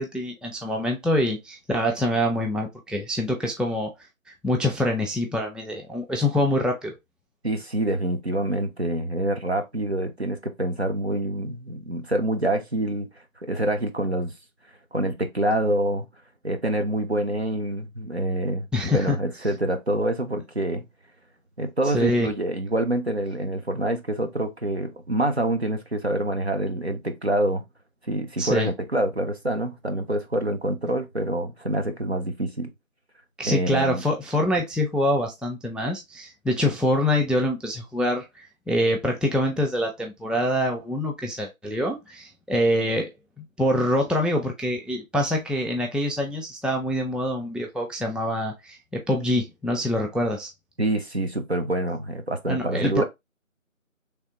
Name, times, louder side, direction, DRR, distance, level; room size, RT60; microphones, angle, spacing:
voice 1, 0.0-3.9 4.3-6.9 18.7-19.2 21.9-22.3 28.4-28.7 33.4-43.1 43.6-50.5 52.5-53.0, left 1 dB, ahead, 0.4 m, -25 dB
voice 2, 7.4-13.1 13.4-14.3 14.9-16.1 16.4-20.8 21.6-27.6 28.1-32.7 33.5-34.0 50.8-53.0, right 1 dB, 50° right, 0.6 m, -26 dB
3.3 x 2.5 x 2.7 m
figure-of-eight pair, 170°, 41 cm